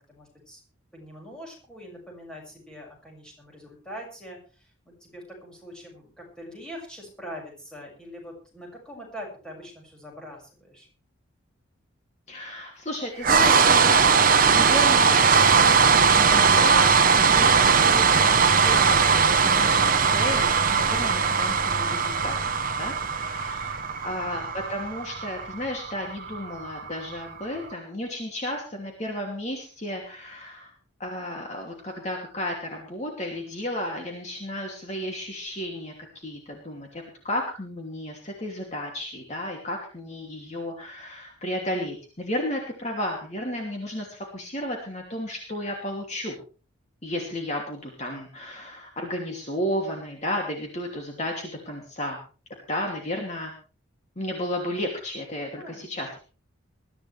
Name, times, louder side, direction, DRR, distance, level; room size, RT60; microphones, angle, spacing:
voice 1, 0.1-0.6 0.9-10.9 23.7-24.2 55.5-55.9, equal, 5° left, -2 dB, 6.4 m, -43 dB
voice 2, 12.3-14.1 14.5-15.3 16.2-22.5 22.8-30.7 31.0-46.3 47.0-52.2 52.7-53.5 54.2-56.1, left 1 dB, 35° left, 1 dB, 2.8 m, -33 dB
sound 1, 13.2-27.3, right 5 dB, 40° right, 1.1 m, -20 dB
21.5 x 14.0 x 3.4 m, 0.37 s
head